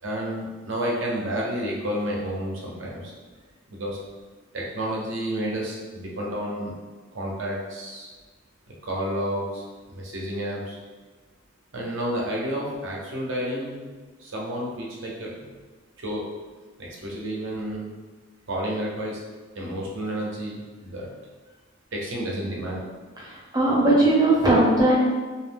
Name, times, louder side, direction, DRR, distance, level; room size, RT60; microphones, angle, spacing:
voice 1, 0.0-3.1 3.7-4.0 4.5-6.7 7.1-8.1 8.7-9.6 9.9-10.8 11.7-13.8 14.2-15.3 16.0-16.2 16.8-17.9 18.5-19.2 19.5-21.1 21.9-22.8, equal, 65° right, -3 dB, 0.6 m, -30 dB
voice 2, 23.5-24.9, right 2 dB, 20° right, -5 dB, 0.6 m, -18 dB
2.4 x 2.0 x 3.3 m, 1.3 s
head